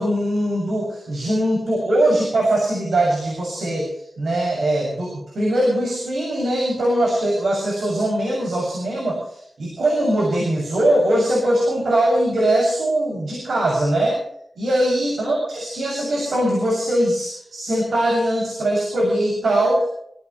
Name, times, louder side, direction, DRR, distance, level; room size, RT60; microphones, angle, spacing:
voice 1, 0.0-14.2 14.6-19.9, right 1 dB, 80° right, -1 dB, 7.1 m, -21 dB
26.5 x 17.0 x 3.2 m, 0.70 s
wide cardioid pair, 90°, 0 cm